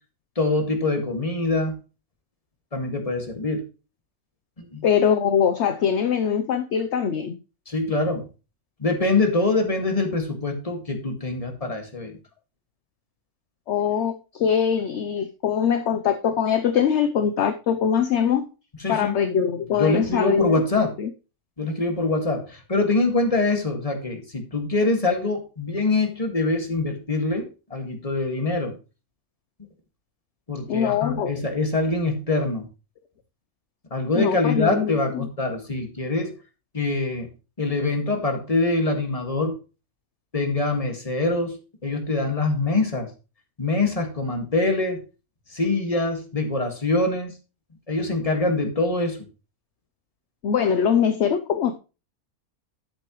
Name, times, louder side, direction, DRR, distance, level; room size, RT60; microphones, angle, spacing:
voice 1, 0.4-1.7 2.7-3.6 4.6-4.8 7.7-8.3 8.8-12.1 18.8-19.1 19.7-20.9 21.6-28.8 30.5-32.7 33.9-36.3 36.7-37.3 37.6-39.6 40.3-41.6 41.8-43.1 43.6-45.0 45.5-47.3 47.9-49.2, left 2 dB, 25° left, 3 dB, 2.0 m, -24 dB
voice 2, 4.8-7.4 13.7-18.5 18.9-21.1 30.7-31.3 34.1-35.3 50.4-51.8, left 8 dB, 60° left, 8 dB, 0.9 m, -22 dB
11.5 x 7.9 x 3.1 m, 0.32 s
omnidirectional pair, 1.6 m